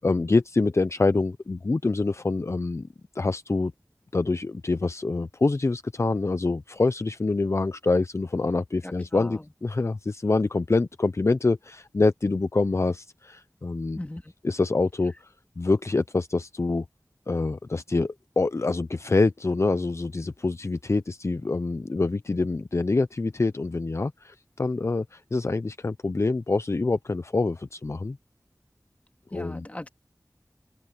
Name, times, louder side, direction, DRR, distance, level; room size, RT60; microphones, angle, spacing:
voice 1, 0.0-2.9 3.1-3.7 4.1-14.0 14.4-15.1 15.6-16.8 17.3-28.2 29.3-29.6, left 3 dB, 50° left, 0.5 m, -25 dB
voice 2, 8.8-9.5 14.0-14.3 29.3-29.9, left 1 dB, 25° left, 2.2 m, -38 dB
open air
wide cardioid pair, 55°, 6 cm